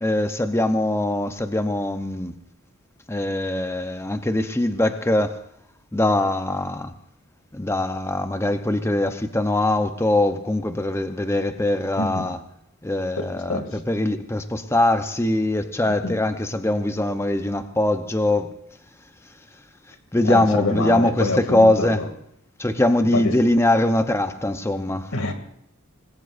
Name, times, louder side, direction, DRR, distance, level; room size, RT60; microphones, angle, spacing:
voice 1, 0.0-2.4 3.1-5.4 5.9-6.9 7.5-12.4 12.8-18.5 20.1-22.0 22.6-25.1, left 1 dB, 10° left, 0.8 m, -22 dB
voice 2, 13.2-13.8 15.8-16.1 20.2-22.1 23.1-23.3 25.1-25.3, left 2 dB, 80° left, 2.5 m, -26 dB
26.0 x 20.0 x 2.6 m
head